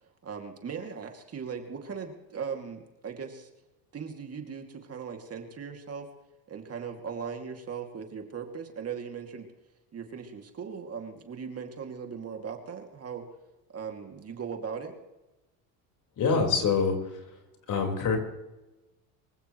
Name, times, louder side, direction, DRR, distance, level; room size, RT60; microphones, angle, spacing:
voice 1, 0.2-3.5 3.9-6.1 6.5-9.5 9.9-13.3 13.7-15.0, right 6 dB, 35° right, 4 dB, 2.5 m, -38 dB
voice 2, 16.2-17.2 17.7-18.2, left 5 dB, 45° left, 2 dB, 4.8 m, -25 dB
24.5 x 15.5 x 3.2 m, 1.0 s
supercardioid pair, 105°, 42 cm